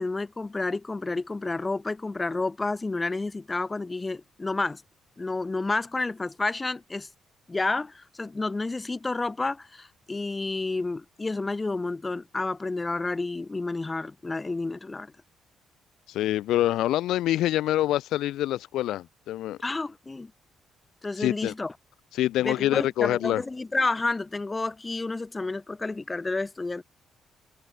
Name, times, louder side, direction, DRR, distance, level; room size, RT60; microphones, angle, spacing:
voice 1, 0.0-4.8 5.2-7.1 7.5-15.1 19.6-20.3 21.0-21.7 22.4-26.8, left 3 dB, 20° left, 0.9 m, -30 dB
voice 2, 16.1-19.6 21.2-21.5 22.1-23.4, left 14 dB, 85° left, 0.4 m, -25 dB
cardioid pair, 90°, 0 cm